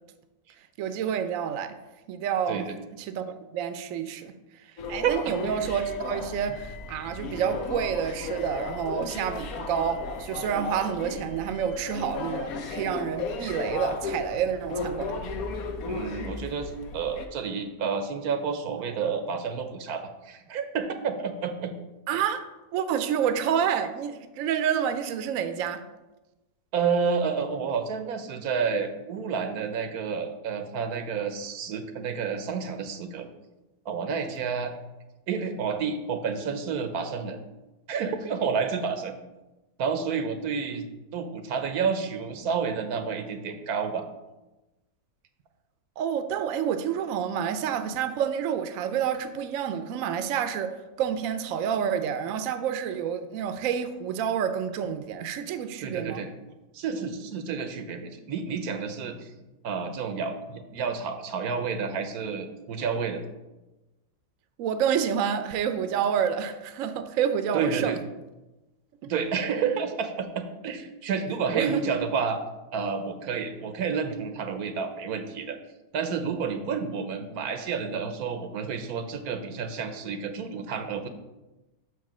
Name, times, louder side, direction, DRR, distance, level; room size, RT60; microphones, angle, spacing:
voice 1, 0.8-1.7 2.1-2.6 3.0-4.3 4.9-15.1 22.1-22.4 22.7-25.8 46.0-56.2 64.6-68.0 71.5-71.8, right 8 dB, 70° right, 9 dB, 0.9 m, -28 dB
sound 1, 4.8-17.3, left 4 dB, 75° left, 1.2 m, -35 dB
voice 2, 5.0-5.5 15.9-21.7 26.7-33.3 33.8-34.7 35.3-37.4 37.9-39.1 39.8-44.1 55.8-56.3 56.7-59.3 59.6-63.2 67.5-68.0 69.0-72.4 72.7-75.6 75.9-81.1, right 6 dB, 90° right, 7 dB, 1.3 m, -30 dB
6.4 x 4.8 x 6.0 m, 1.0 s
omnidirectional pair, 1.5 m